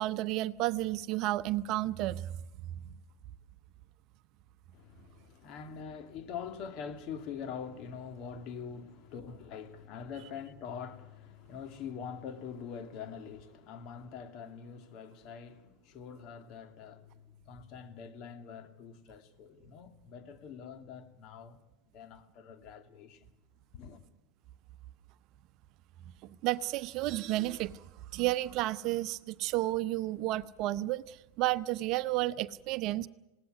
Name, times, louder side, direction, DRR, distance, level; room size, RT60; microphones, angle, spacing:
voice 1, 0.0-2.4 26.4-27.8 28.1-33.1, right 17 dB, 50° right, 0.7 m, -32 dB
voice 2, 4.7-21.6 21.9-23.3 23.7-24.0, left 7 dB, 50° left, 2.2 m, -44 dB
20.0 x 17.5 x 9.7 m
hypercardioid pair, 90°, 0 cm